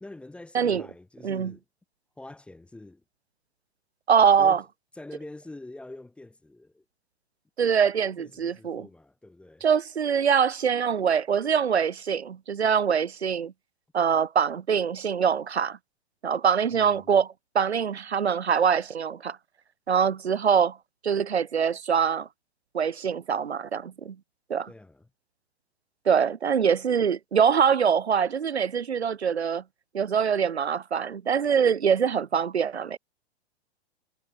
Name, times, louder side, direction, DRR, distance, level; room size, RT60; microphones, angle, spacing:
voice 1, 0.0-1.6 2.2-3.0 4.4-4.7 5.0-6.8 8.2-9.6 16.7-17.2 24.7-25.1, left 2 dB, 5° left, 0.7 m, -45 dB
voice 2, 4.1-4.6 7.6-8.9 9.6-13.5 13.9-15.8 16.2-19.4 19.9-20.8 21.0-22.3 22.7-24.2 24.5-24.7 26.1-29.6 29.9-33.0, right 7 dB, 85° right, 0.5 m, -24 dB
figure-of-eight pair, 105°, 32 cm